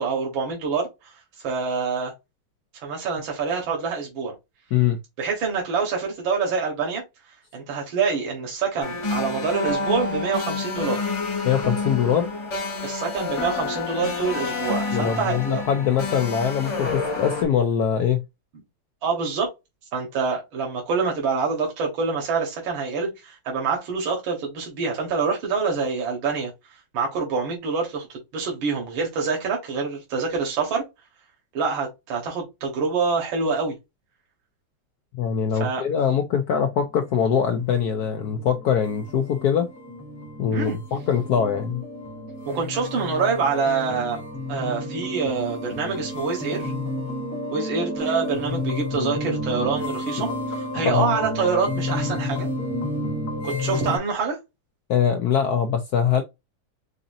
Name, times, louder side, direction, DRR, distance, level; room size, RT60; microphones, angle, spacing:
voice 1, 0.0-2.1 2.7-4.3 5.2-7.0 7.5-11.1 12.8-15.6 19.0-19.5 19.9-26.5 26.9-30.8 31.5-33.7 35.6-35.8 40.5-40.8 42.5-44.2 44.5-46.7 47.5-52.5 53.4-54.4, right 5 dB, 75° right, 2.0 m, -26 dB
sound 1, 8.8-17.4, left 3 dB, 40° left, 1.6 m, -28 dB
voice 2, 11.4-12.3 14.9-18.2 35.2-39.7 40.4-41.8 50.8-51.1 54.9-56.2, left 8 dB, 75° left, 0.9 m, -22 dB
sound 2, 37.0-54.0, left 1 dB, 20° left, 0.4 m, -31 dB
5.0 x 2.6 x 2.5 m
omnidirectional pair, 2.2 m